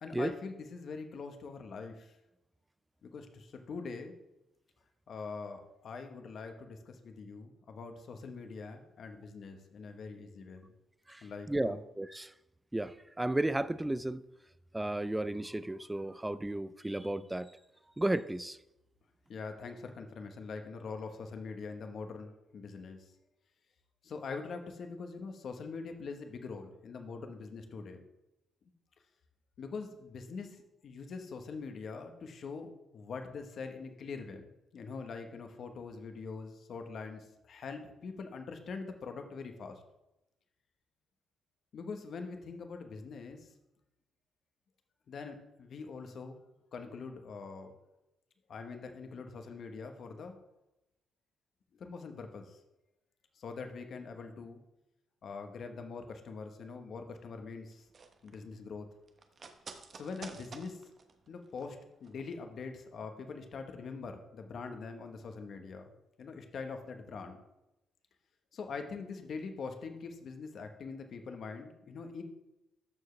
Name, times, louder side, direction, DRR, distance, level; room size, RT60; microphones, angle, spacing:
voice 1, 0.0-2.2 3.0-4.1 5.1-10.7 11.2-11.8 19.3-23.1 24.0-28.0 29.6-34.4 34.7-39.8 41.7-43.5 45.1-46.4 46.7-47.7 48.5-50.4 51.7-52.6 53.3-54.6 55.2-57.8 58.2-58.9 59.9-60.8 61.3-65.9 66.2-67.4 68.5-72.2, left 4 dB, 55° left, 6 dB, 1.1 m, -43 dB
voice 2, 11.1-12.3 12.7-14.2 14.7-17.5 18.0-18.6, right 1 dB, 10° right, 16 dB, 0.3 m, -33 dB
sound 1, 57.7-62.3 62.6-62.7, right 4 dB, 45° right, 0.9 m, -51 dB
13.5 x 4.6 x 3.3 m, 0.91 s
cardioid pair, 90°, 0 cm